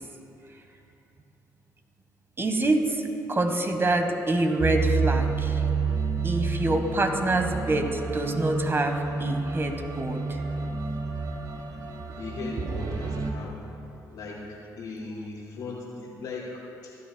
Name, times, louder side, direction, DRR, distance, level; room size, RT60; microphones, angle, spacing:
voice 1, 2.4-3.0 3.3-5.6 6.2-10.4, right 2 dB, 30° right, 5 dB, 1.4 m, -26 dB
sound 1, 4.6-13.3, right 4 dB, 55° right, 1.2 m, -29 dB
voice 2, 12.2-13.6 14.1-16.9, left 3 dB, 75° left, -6 dB, 1.9 m, -38 dB
17.0 x 12.0 x 2.3 m, 2.8 s
supercardioid pair, 55°, 8 cm